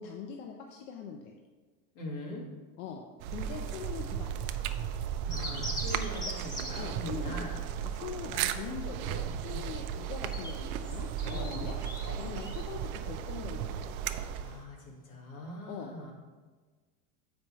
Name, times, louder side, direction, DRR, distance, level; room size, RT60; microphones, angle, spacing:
voice 1, 0.0-1.3 2.8-3.0 3.3-4.5 6.1-6.3 6.8-7.3 7.8-11.8 12.2-13.9 15.7-16.1, left 7 dB, 65° left, 2 dB, 0.7 m, -42 dB
voice 2, 1.9-2.5 5.3-7.6 9.5-9.8 11.3-12.4 14.4-16.1, left 1 dB, 85° left, -1 dB, 1.8 m, -42 dB
sound 1, 3.2-14.6, right 9 dB, 85° right, 0.5 m, -35 dB
sound 2, 5.3-6.9 10.0-12.6, equal, 10° left, 0.5 m, -41 dB
6.9 x 5.2 x 3.0 m, 1.4 s
supercardioid pair, 155°, 42 cm